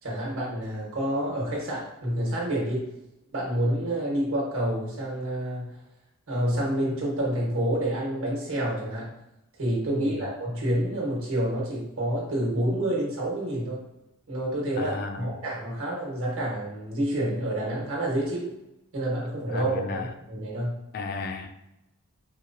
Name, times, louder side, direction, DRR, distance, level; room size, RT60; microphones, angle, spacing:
voice 1, 0.0-2.9 3.3-5.8 6.3-9.1 9.6-13.8 14.3-18.5 18.9-20.8, right 1 dB, 65° right, -3 dB, 1.2 m, -28 dB
voice 2, 14.8-15.3 19.5-20.1 20.9-21.5, left 4 dB, 45° left, 5 dB, 0.3 m, -34 dB
4.5 x 2.2 x 2.6 m, 0.92 s
head